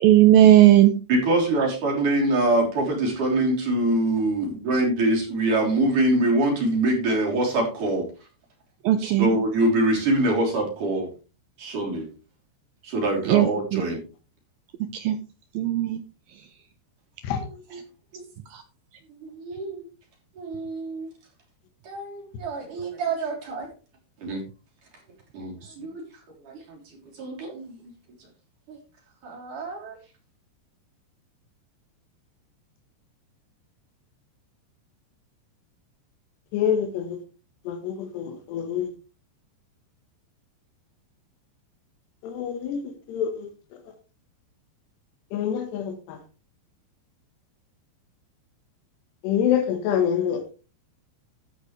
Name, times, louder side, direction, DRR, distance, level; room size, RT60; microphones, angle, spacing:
voice 1, 0.0-0.9 8.9-9.3 13.3-13.5 13.7-13.8 15.0-15.2 15.6-16.0, right 13 dB, 85° right, 9 dB, 2.1 m, -16 dB
voice 2, 1.1-8.1 8.9-11.1 11.6-12.1 12.8-14.0 18.1-18.2 19.2-19.9 20.4-21.1 21.8-23.7 24.2-24.4 25.3-26.0 26.4-26.8 27.1-27.7 28.7-28.8 29.2-30.0, right 1 dB, 50° right, 0 dB, 4.6 m, -24 dB
voice 3, 36.5-37.2 37.7-38.9 42.2-43.5 45.3-46.2 49.2-50.4, left 8 dB, 75° left, 5 dB, 3.3 m, -26 dB
13.5 x 9.0 x 3.2 m, 0.32 s
omnidirectional pair, 5.2 m